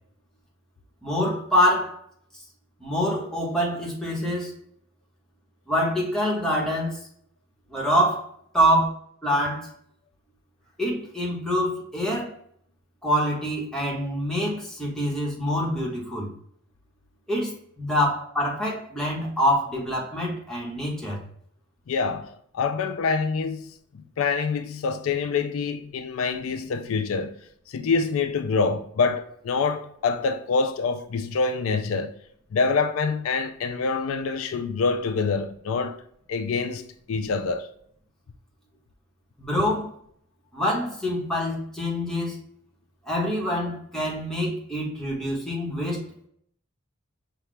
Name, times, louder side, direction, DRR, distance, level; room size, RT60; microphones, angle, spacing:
voice 1, 1.0-2.0 2.8-4.5 5.7-7.0 7.7-8.9 9.2-9.7 10.8-12.3 13.0-16.3 17.3-21.3 39.4-39.9 40.5-42.4 43.1-46.3, equal, 5° left, 1.2 m, -25 dB
voice 2, 21.9-27.4 27.7-32.1 32.5-36.0 36.3-36.8 37.1-37.7, left 4 dB, 75° left, 0.4 m, -26 dB
5.7 x 2.3 x 3.2 m
head